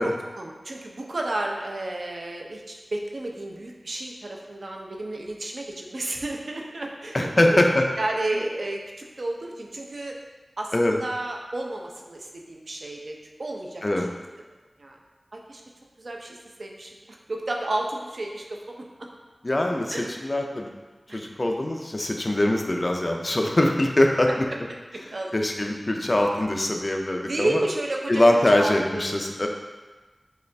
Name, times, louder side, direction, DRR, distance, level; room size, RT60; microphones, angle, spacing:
voice 1, 0.0-7.6 8.0-10.2 10.6-14.2 14.8-15.0 15.3-15.6 16.0-18.9 19.9-20.2 21.1-21.2 25.1-25.3 27.2-29.2, right 2 dB, 70° right, 0 dB, 0.6 m, -32 dB
voice 2, 7.1-7.9 10.7-11.0 13.8-14.1 19.4-20.7 21.1-24.3 25.3-27.6 28.1-29.5, left 1 dB, 40° left, 2 dB, 0.5 m, -22 dB
6.4 x 2.5 x 3.4 m, 1.3 s
wide cardioid pair, 65°, 0 cm